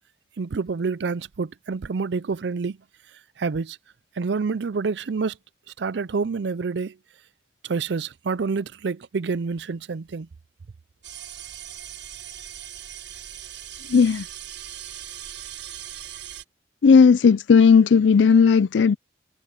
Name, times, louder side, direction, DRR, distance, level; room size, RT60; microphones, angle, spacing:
voice 1, 0.4-2.8 3.4-3.8 4.2-5.3 5.8-6.9 7.6-10.3, right 4 dB, 70° right, 0.5 m, -27 dB
sound 1, 11.0-16.4, right 11 dB, 90° right, 6.2 m, -39 dB
voice 2, 13.9-14.2 16.8-19.0, left 5 dB, 80° left, 0.4 m, -15 dB
head